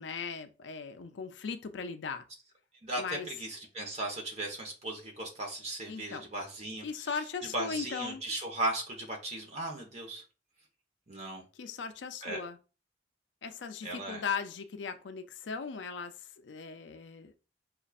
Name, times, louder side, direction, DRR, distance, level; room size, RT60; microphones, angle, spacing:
voice 1, 0.0-2.2 3.0-3.3 5.9-6.3 6.8-8.2 11.6-12.6 13.4-17.3, left 5 dB, 85° left, 0.5 m, -38 dB
voice 2, 2.8-6.8 7.5-10.2 11.1-11.4 12.2-12.4 13.8-14.2, right 2 dB, 35° right, 1.1 m, -37 dB
5.1 x 2.4 x 2.4 m
head